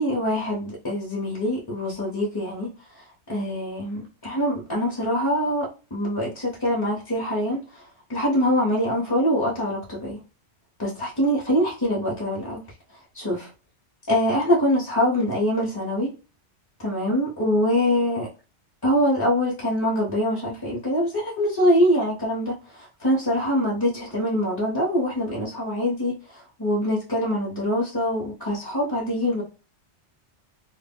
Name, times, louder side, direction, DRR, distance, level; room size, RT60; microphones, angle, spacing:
voice 1, 0.0-2.7 3.3-7.8 8.1-10.2 10.8-12.6 13.1-13.5 14.1-16.1 16.8-18.3 18.8-29.4, equal, 25° left, 0.5 m, -24 dB
2.1 x 2.0 x 3.5 m
omnidirectional pair, 1.2 m